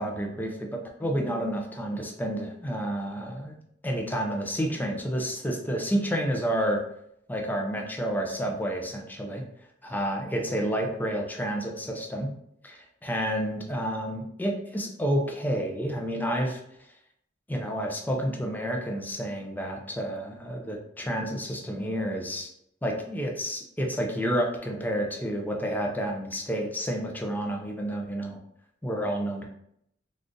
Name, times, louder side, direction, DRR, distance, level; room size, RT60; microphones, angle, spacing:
voice 1, 0.0-3.6 3.8-6.8 7.3-9.4 9.8-12.3 12.6-16.6 17.5-22.5 22.8-28.4 28.8-29.4, equal, 10° left, 1 dB, 0.5 m, -30 dB
3.7 x 2.4 x 2.5 m, 0.73 s
head